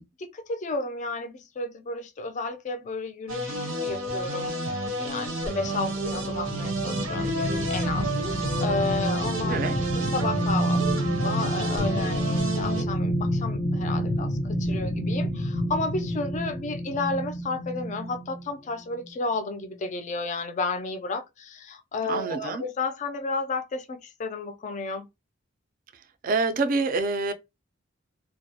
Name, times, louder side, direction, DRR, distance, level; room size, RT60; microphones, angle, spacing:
voice 1, 0.2-10.8 11.2-25.1, left 3 dB, 40° left, 0.3 m, -32 dB
sound 1, 3.3-12.8, right 2 dB, 90° right, 0.6 m, -31 dB
sound 2, 5.7-18.5 18.9-19.1, equal, 90° left, 0.6 m, -28 dB
voice 2, 22.1-22.6 26.2-27.3, right 3 dB, 45° right, 0.3 m, -26 dB
2.2 x 2.0 x 2.7 m
head